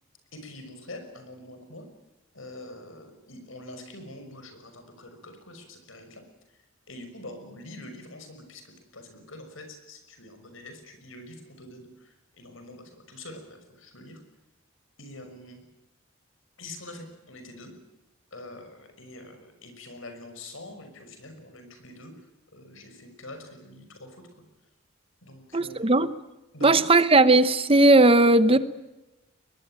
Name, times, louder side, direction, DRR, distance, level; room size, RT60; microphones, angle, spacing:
voice 1, 0.3-1.9 2.3-6.2 6.9-14.2 15.0-15.6 16.6-17.7 18.3-22.1 22.5-24.2 25.2-26.1 26.5-26.8 28.5-28.6, left 1 dB, 70° left, 7 dB, 6.0 m, -45 dB
voice 2, 25.5-26.1 26.6-28.6, right 2 dB, 25° right, 14 dB, 0.9 m, -17 dB
23.0 x 21.5 x 9.0 m, 0.99 s
head